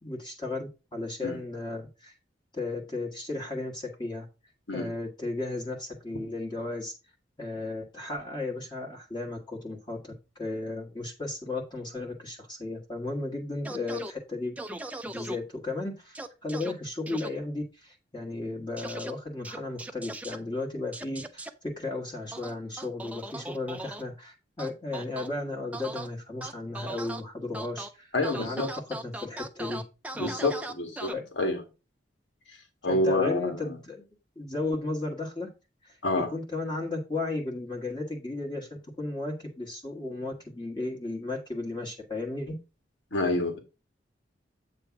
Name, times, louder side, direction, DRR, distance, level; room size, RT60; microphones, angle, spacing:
voice 1, 0.0-2.1 2.5-4.3 4.7-6.9 7.4-10.1 10.4-14.5 15.0-29.8 30.1-30.5 31.1-31.3 32.9-34.0 34.3-35.5 35.8-42.5, left 2 dB, 25° left, 1.4 m, -34 dB
sound 1, 13.6-14.1 14.6-15.4 16.1-16.7 17.1-17.3 18.8-19.1 19.4-20.4 20.9-21.5 22.3-24.0 24.6-25.3 25.7-26.1 26.4-27.2 27.5-27.9 28.2-31.1, right 2 dB, 10° right, 0.5 m, -38 dB
voice 2, 28.1-28.7 30.2-31.6 32.8-33.8 36.0-36.3 43.1-43.6, left 2 dB, 80° left, 2.0 m, -28 dB
8.3 x 3.2 x 5.8 m
head